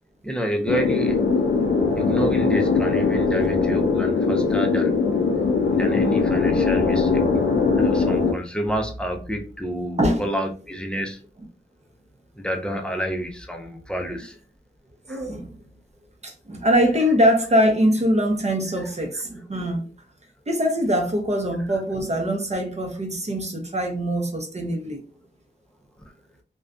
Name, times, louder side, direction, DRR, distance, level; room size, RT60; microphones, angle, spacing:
voice 1, 0.2-1.3 2.0-5.0 5.7-7.2 7.8-11.2 12.4-14.4 15.1-15.3 18.8-18.9, equal, 5° left, 3 dB, 0.5 m, -29 dB
sound 1, 0.7-8.3, left 4 dB, 75° left, 0.4 m, -21 dB
voice 2, 15.1-15.5 16.2-19.8 20.5-25.0, equal, 35° right, 3 dB, 0.7 m, -22 dB
2.4 x 2.2 x 2.4 m, 0.36 s
wide cardioid pair, 75°, 20 cm